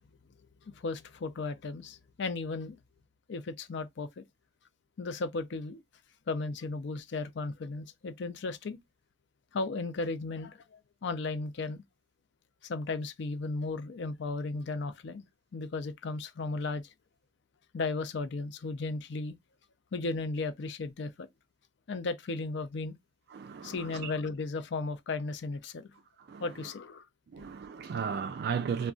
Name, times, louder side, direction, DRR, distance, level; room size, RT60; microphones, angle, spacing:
voice 1, 0.8-2.8 3.3-4.2 5.0-5.8 6.3-8.8 9.5-11.8 12.6-15.3 15.5-16.8 17.7-19.4 19.9-21.3 21.9-23.0 23.6-25.9 26.4-27.0, left 3 dB, 65° left, 0.5 m, -35 dB
voice 2, 23.3-23.8 24.0-24.1 26.3-26.4 27.3-28.9, right 6 dB, 55° right, 0.3 m, -34 dB
2.4 x 2.2 x 3.6 m
head